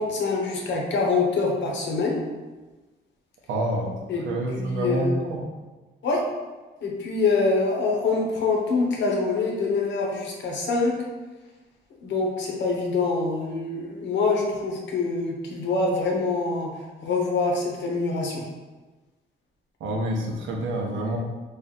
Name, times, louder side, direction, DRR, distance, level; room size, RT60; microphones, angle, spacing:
voice 1, 0.0-2.2 4.1-4.2 4.5-5.2 6.0-6.2 6.8-11.0 12.0-16.7 17.0-18.4, left 3 dB, 65° left, -1 dB, 0.9 m, -25 dB
voice 2, 3.5-3.9 4.2-5.4 19.8-21.2, right 1 dB, 75° right, 0 dB, 0.8 m, -27 dB
3.1 x 2.5 x 3.9 m, 1.2 s
cardioid pair, 90°, 20 cm